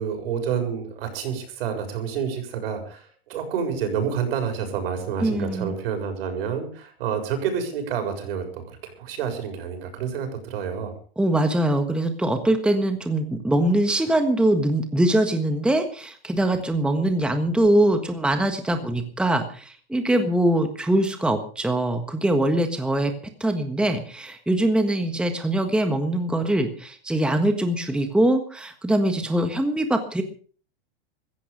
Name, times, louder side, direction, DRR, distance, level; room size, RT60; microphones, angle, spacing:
voice 1, 0.0-10.9, right 7 dB, 70° right, 6 dB, 6.9 m, -29 dB
voice 2, 5.2-5.7 11.2-23.1 23.4-30.2, right 1 dB, 5° right, 7 dB, 1.5 m, -22 dB
16.0 x 14.5 x 5.3 m, 0.42 s
supercardioid pair, 145°, 30 cm